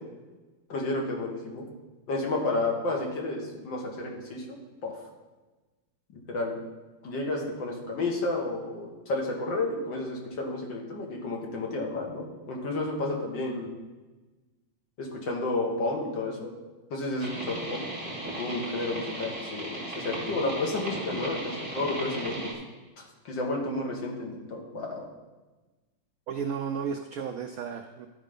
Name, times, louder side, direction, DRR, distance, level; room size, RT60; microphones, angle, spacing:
voice 1, 0.7-1.7 2.1-4.5 4.8-4.9 6.1-6.6 7.0-13.7 15.0-16.5 16.9-17.9 18.2-22.5 23.0-25.1, left 2 dB, 70° left, -1 dB, 2.2 m, -31 dB
sound 1, 17.2-22.5, right 1 dB, 20° right, 2.3 m, -36 dB
voice 2, 26.3-28.1, right 6 dB, 80° right, 6 dB, 0.8 m, -33 dB
12.0 x 4.1 x 5.2 m, 1.2 s
omnidirectional pair, 2.1 m